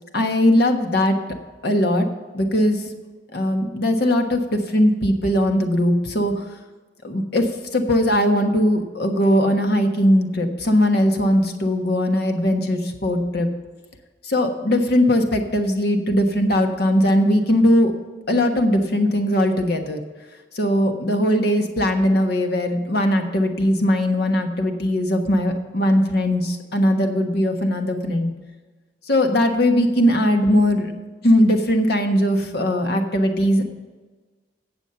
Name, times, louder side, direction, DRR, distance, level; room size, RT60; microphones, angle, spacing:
voice 1, 0.1-1.2 1.6-2.1 2.3-2.9 3.3-6.5 7.0-13.5 14.2-17.9 18.3-20.0 20.5-28.3 29.1-30.9 31.2-33.6, left 1 dB, 65° left, 5 dB, 1.3 m, -19 dB
9.1 x 7.1 x 6.8 m, 1.3 s
head